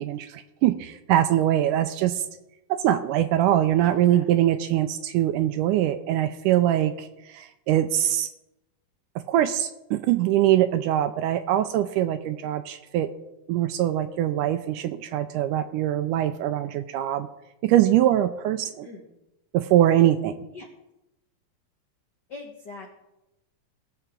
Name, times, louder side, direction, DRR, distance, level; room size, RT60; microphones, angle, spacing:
voice 1, 0.0-2.2 2.7-8.3 9.3-13.1 13.5-17.3 17.6-18.9 19.5-20.3, right 12 dB, 80° right, 10 dB, 1.9 m, -23 dB
voice 2, 22.3-22.9, left 3 dB, 80° left, 0 dB, 0.9 m, -41 dB
19.5 x 6.9 x 3.7 m, 0.94 s
omnidirectional pair, 4.0 m